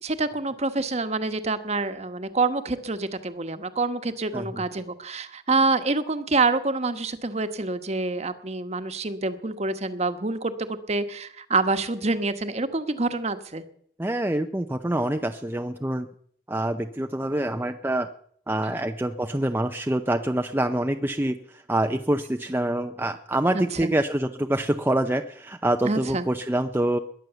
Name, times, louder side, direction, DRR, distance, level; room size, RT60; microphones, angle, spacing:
voice 1, 0.0-13.6 23.5-23.9 25.8-26.3, right 3 dB, 40° right, 10 dB, 1.2 m, -27 dB
voice 2, 14.0-16.1 16.5-18.1 18.5-21.4 21.7-27.0, right 1 dB, 10° right, 6 dB, 0.6 m, -26 dB
21.0 x 9.3 x 7.0 m, 0.62 s
head